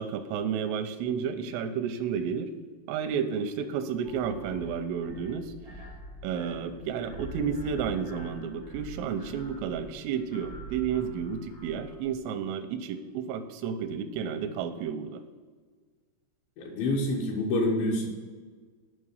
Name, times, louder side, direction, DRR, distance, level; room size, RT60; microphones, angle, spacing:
voice 1, 0.0-2.5 2.9-5.5 6.2-15.2, right 7 dB, 90° right, 9 dB, 3.4 m, -31 dB
sound 1, 4.0-12.1, right 1 dB, 20° left, 0.6 m, -45 dB
voice 2, 16.6-18.1, left 1 dB, 75° left, -3 dB, 3.7 m, -27 dB
10.0 x 5.6 x 6.5 m, 1.5 s
omnidirectional pair, 5.7 m